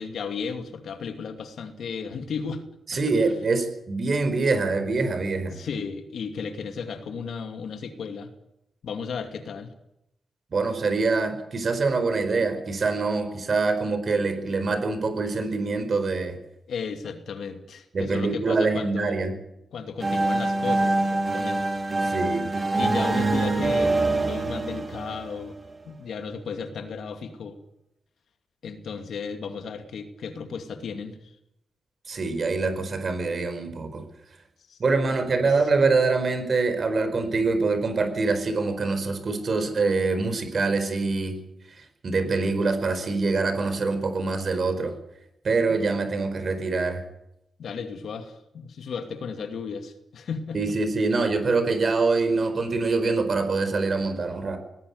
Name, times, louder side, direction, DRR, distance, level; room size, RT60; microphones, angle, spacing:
voice 1, 0.0-2.6 2.9-3.0 3.3-3.4 5.5-8.3 8.8-9.7 16.7-19.3 19.7-21.6 22.7-25.6 25.8-27.6 28.6-31.3 34.7-34.8 35.4-35.6 45.7-45.8 47.6-50.6, left 5 dB, 70° left, 6 dB, 2.5 m, -34 dB
voice 2, 2.9-5.6 10.5-16.4 17.9-19.3 22.0-22.5 32.1-34.0 34.8-41.4 42.0-44.9 45.4-47.0 50.5-54.6, right 3 dB, 40° right, 9 dB, 4.6 m, -24 dB
sound 1, 20.0-25.8, right 2 dB, 25° right, 3.1 m, -25 dB
19.5 x 18.0 x 9.7 m, 0.83 s
wide cardioid pair, 135°, 0 cm